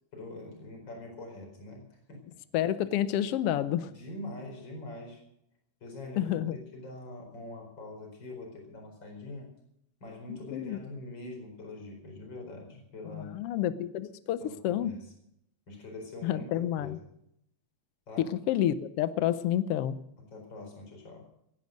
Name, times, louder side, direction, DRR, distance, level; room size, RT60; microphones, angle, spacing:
voice 1, 0.1-2.2 3.8-5.2 5.8-9.5 10.0-13.4 14.4-15.1 15.7-17.1 18.1-18.3 20.2-21.2, left 2 dB, 35° left, 1 dB, 5.2 m, -44 dB
voice 2, 2.5-3.9 6.2-6.6 10.3-10.8 13.1-14.9 16.2-17.0 18.2-20.0, left 11 dB, 90° left, 14 dB, 1.3 m, -29 dB
18.0 x 10.5 x 6.5 m, 0.76 s
omnidirectional pair, 3.6 m